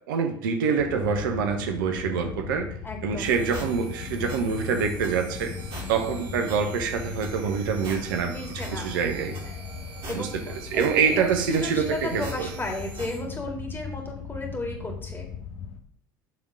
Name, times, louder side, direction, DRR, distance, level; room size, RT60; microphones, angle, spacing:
voice 1, 0.1-2.7 3.0-5.5 5.9-9.3 10.1-10.3 10.7-12.5, right 6 dB, 70° right, 6 dB, 0.8 m, -26 dB
sound 1, 0.8-15.8, left 6 dB, 60° left, 1.0 m, -38 dB
voice 2, 1.9-2.5 2.8-3.4 5.9-6.2 8.3-8.9 9.4-9.6 10.1-15.3, left 2 dB, 20° left, 2 dB, 2.2 m, -35 dB
sound 2, 3.2-13.2, right 2 dB, 50° right, 2.8 m, -41 dB
7.7 x 3.7 x 6.2 m, 0.63 s
figure-of-eight pair, 65°, 11 cm